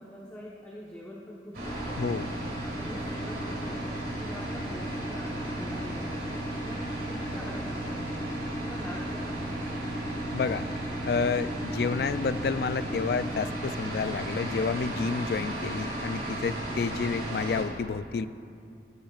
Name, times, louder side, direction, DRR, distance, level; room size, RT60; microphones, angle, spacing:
voice 1, 0.0-2.1 2.6-3.9 4.2-8.3 8.6-9.9, left 1 dB, 10° left, -6 dB, 1.1 m, -44 dB
sound 1, 1.5-17.6, right 1 dB, 55° right, 2.3 m, -34 dB
voice 2, 2.0-2.3 10.3-10.6 11.1-18.3, left 5 dB, 60° left, 14 dB, 0.3 m, -30 dB
18.5 x 10.0 x 2.4 m, 2.5 s
head